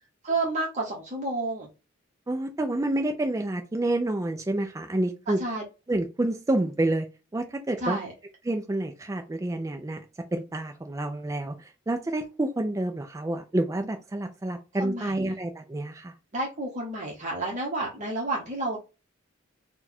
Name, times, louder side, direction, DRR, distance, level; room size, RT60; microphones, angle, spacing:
voice 1, 0.2-1.7 5.3-5.6 7.8-8.1 14.8-15.1 16.3-18.8, right 2 dB, 35° right, -2 dB, 0.9 m, -30 dB
voice 2, 2.3-5.4 5.9-7.1 7.3-8.0 8.4-10.0 10.3-16.1, right 1 dB, 15° right, 5 dB, 0.4 m, -28 dB
4.3 x 2.2 x 4.3 m, 0.29 s
head